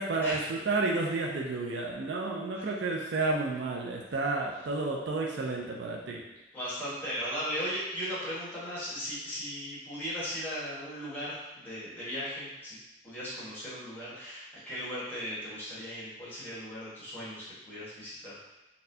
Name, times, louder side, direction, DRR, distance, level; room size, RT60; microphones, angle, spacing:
voice 1, 0.0-6.2, right 3 dB, 65° right, -1 dB, 0.4 m, -31 dB
voice 2, 6.5-12.8 13.0-18.4, equal, 10° left, -11 dB, 1.4 m, -37 dB
4.1 x 2.2 x 2.7 m, 1.0 s
head